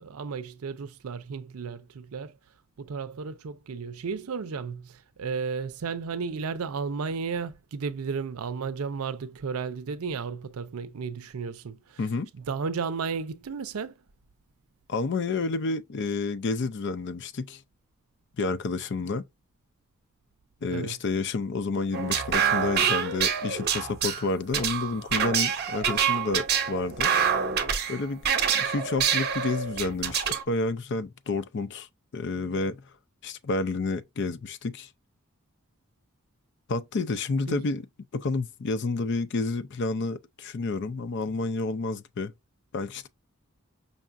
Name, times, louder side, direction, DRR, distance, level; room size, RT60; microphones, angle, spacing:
voice 1, 0.0-2.4 2.8-12.0 12.3-14.0 20.7-21.0 37.5-37.6, right 5 dB, 80° right, 0.5 m, -33 dB
voice 2, 12.0-12.3 14.9-17.6 18.4-19.3 20.6-27.1 27.9-28.3 28.5-31.9 32.1-32.8 33.2-34.9 36.7-37.9 38.1-42.3 42.7-43.1, left 3 dB, 55° left, 0.4 m, -30 dB
sound 1, 21.9-30.4, right 7 dB, 50° right, 0.8 m, -26 dB
5.3 x 2.4 x 2.5 m
head